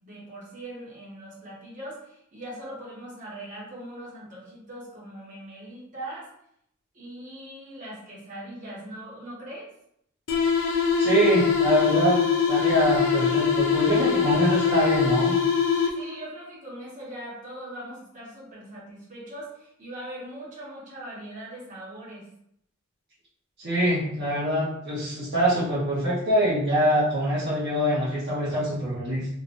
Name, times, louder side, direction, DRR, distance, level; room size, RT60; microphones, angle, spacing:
voice 1, 0.0-6.3 6.9-9.7 15.9-22.2, right 1 dB, 40° right, -7 dB, 1.3 m, -40 dB
sound 1, 10.3-16.2, left 6 dB, 70° left, 0.5 m, -23 dB
voice 2, 11.0-12.2 12.5-15.3 23.6-29.3, right 1 dB, 55° right, -10 dB, 1.0 m, -24 dB
3.2 x 2.9 x 2.6 m, 0.73 s
head